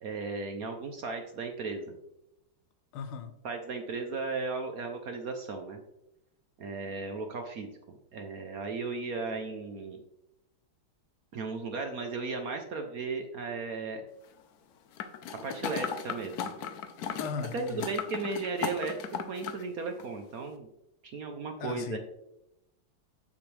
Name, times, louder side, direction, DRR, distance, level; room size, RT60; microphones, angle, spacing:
voice 1, 0.0-2.0 3.4-5.8 6.6-10.0 11.3-14.0 15.4-16.3 17.5-19.0 19.3-20.7 21.0-22.0, right 4 dB, 65° right, 5 dB, 0.9 m, -35 dB
voice 2, 2.9-3.3 17.2-17.9 21.6-22.0, left 6 dB, 85° left, 10 dB, 1.6 m, -37 dB
sound 1, 15.0-19.6 20.0-20.1, left 7 dB, 65° left, 1.0 m, -37 dB
7.4 x 7.0 x 3.3 m, 0.86 s
omnidirectional pair, 2.2 m